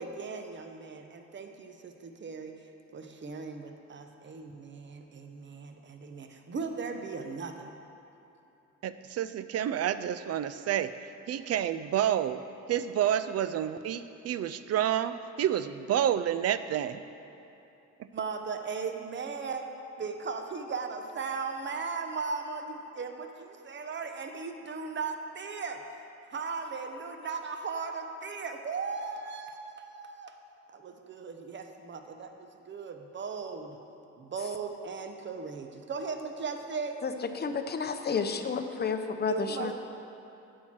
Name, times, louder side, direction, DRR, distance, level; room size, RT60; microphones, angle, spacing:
voice 1, 0.0-2.5 2.9-7.7 18.1-19.7 20.0-25.8 26.3-30.3 30.7-33.8 34.2-37.0 39.3-39.7, right 5 dB, 40° right, 5 dB, 0.8 m, -37 dB
voice 2, 8.8-10.9 11.3-12.4 12.7-17.0, right 10 dB, 55° right, 13 dB, 0.4 m, -29 dB
voice 3, 37.0-39.7, left 5 dB, 35° left, 7 dB, 0.7 m, -31 dB
8.8 x 4.6 x 7.4 m, 2.9 s
cardioid pair, 90°, 30 cm